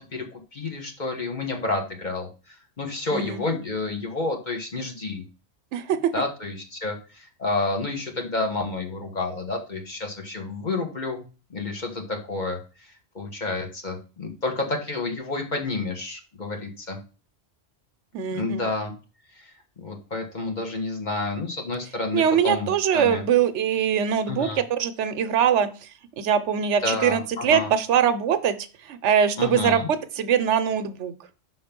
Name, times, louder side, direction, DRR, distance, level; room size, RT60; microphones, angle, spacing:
voice 1, 0.0-5.2 6.1-11.2 11.5-17.0 18.3-18.9 19.3-23.2 24.3-24.6 26.8-27.7 29.4-29.9, left 3 dB, 40° left, 3 dB, 1.3 m, -30 dB
voice 2, 3.1-3.4 5.7-6.1 18.1-18.6 22.1-25.7 26.2-28.6 28.9-29.8 30.2-31.1, right 8 dB, 80° right, 12 dB, 1.0 m, -22 dB
5.9 x 3.9 x 5.1 m, 0.34 s
omnidirectional pair, 1.2 m